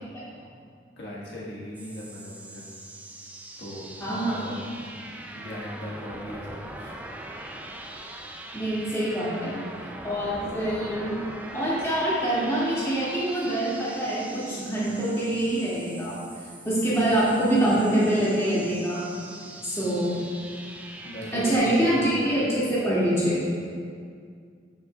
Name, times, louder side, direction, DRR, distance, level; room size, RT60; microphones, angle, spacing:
voice 1, 1.0-2.7 3.6-6.9 19.4-19.6 21.0-22.2, equal, 60° left, -6 dB, 1.5 m, -39 dB
sound 1, 1.7-21.6, right 1 dB, 10° right, 0.4 m, -42 dB
voice 2, 4.0-4.4 8.5-9.6 10.0-11.2 11.5-16.2 16.7-19.0 19.6-20.2 21.3-23.4, right 1 dB, 15° left, -10 dB, 2.2 m, -25 dB
12.0 x 7.6 x 2.4 m, 2.2 s
head